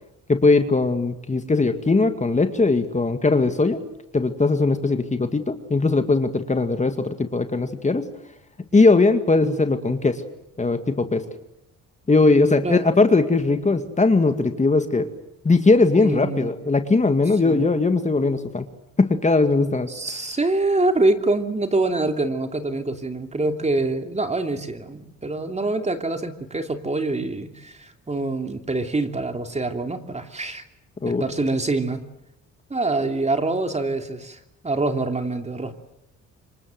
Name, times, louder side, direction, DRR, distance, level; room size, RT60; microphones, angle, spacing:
voice 1, 0.3-3.8 4.1-8.0 8.7-10.2 10.6-11.2 12.1-15.1 15.4-18.7 19.0-19.9 31.0-31.2, left 3 dB, 25° left, 8 dB, 2.2 m, -19 dB
voice 2, 12.6-13.0 15.9-16.5 17.4-17.7 19.9-30.6 31.0-32.0 32.7-35.7, right 2 dB, 20° right, 6 dB, 3.0 m, -25 dB
27.0 x 24.0 x 7.9 m, 0.84 s
cardioid pair, 90°, 30 cm